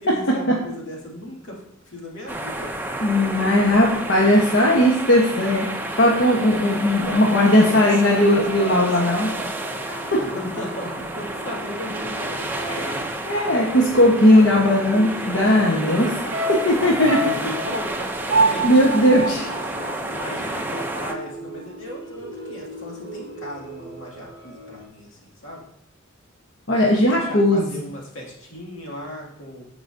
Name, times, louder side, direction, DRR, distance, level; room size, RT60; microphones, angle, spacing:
voice 1, 0.0-1.6 1.9-2.7 7.0-9.9 10.2-13.4 15.4-16.0 16.9-18.7 20.0-25.6 27.1-29.7, left 1 dB, 80° left, -3 dB, 2.2 m, -36 dB
sound 1, 2.3-21.1, right 1 dB, 10° right, 0.5 m, -31 dB
voice 2, 3.0-5.7 6.0-9.3 9.9-10.2 12.7-12.9 13.3-16.1 16.7-17.2 18.6-19.4 26.7-27.7, left 1 dB, 60° left, -3 dB, 1.0 m, -17 dB
sound 2, 7.3-24.9, right 2 dB, 20° left, 3.2 m, -39 dB
sound 3, 16.3-20.7 21.0-21.1, right 2 dB, 75° right, 0.6 m, -26 dB
14.0 x 4.9 x 2.6 m, 0.78 s
head